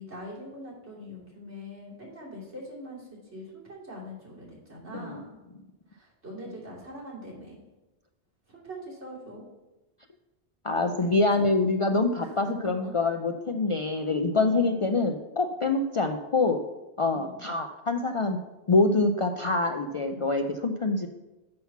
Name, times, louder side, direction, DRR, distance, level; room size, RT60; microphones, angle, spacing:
voice 1, 0.0-5.4 5.9-7.6 8.5-9.5 11.0-11.5 12.2-12.5 12.8-12.9 14.3-14.9 17.1-17.5, equal, 90° right, -4 dB, 3.0 m, -43 dB
voice 2, 10.6-16.6 17.0-18.4 18.7-21.1, left 3 dB, 55° left, 5 dB, 0.3 m, -25 dB
7.5 x 5.7 x 5.8 m, 1.1 s
omnidirectional pair, 1.1 m